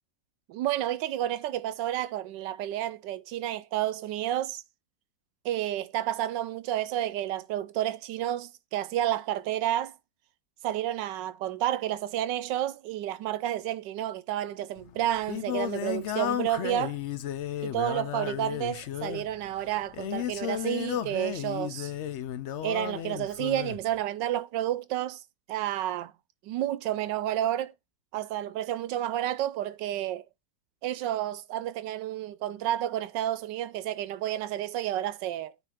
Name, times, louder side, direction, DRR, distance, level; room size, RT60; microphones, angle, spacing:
voice 1, 0.5-4.6 5.4-9.9 10.6-17.0 17.6-21.9 22.6-25.2 25.5-26.1 26.4-27.7 28.1-30.2 30.8-35.5, right 12 dB, 90° right, 1.3 m, -30 dB
Singing, 14.8-23.8, left 11 dB, 70° left, 0.6 m, -34 dB
9.2 x 3.5 x 4.9 m
omnidirectional pair, 1.9 m